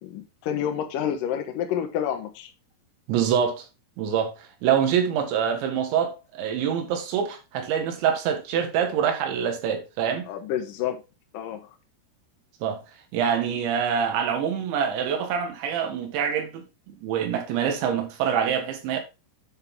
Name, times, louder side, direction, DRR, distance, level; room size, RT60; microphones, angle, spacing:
voice 1, 0.0-2.5 10.3-11.0 11.3-11.7, left 9 dB, 65° left, 2.2 m, -29 dB
voice 2, 3.1-3.7 4.0-10.3 12.6-12.8 13.1-19.0, right 8 dB, 70° right, 3.8 m, -25 dB
9.8 x 6.5 x 3.7 m
omnidirectional pair, 5.7 m